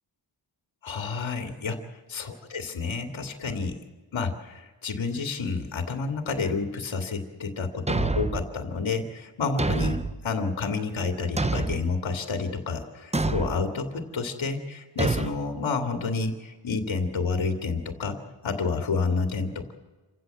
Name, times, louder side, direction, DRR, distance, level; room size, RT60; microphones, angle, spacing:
voice 1, 0.8-1.8 2.1-3.8 4.1-19.7, left 4 dB, 75° left, 5 dB, 2.4 m, -29 dB
Thump thud, 7.9-8.5 9.6-10.2 11.4-11.9 13.1-13.6 15.0-15.3, right 3 dB, 15° right, 0.7 m, -26 dB
27.5 x 16.0 x 7.8 m, 1.3 s
wide cardioid pair, 150°, 46 cm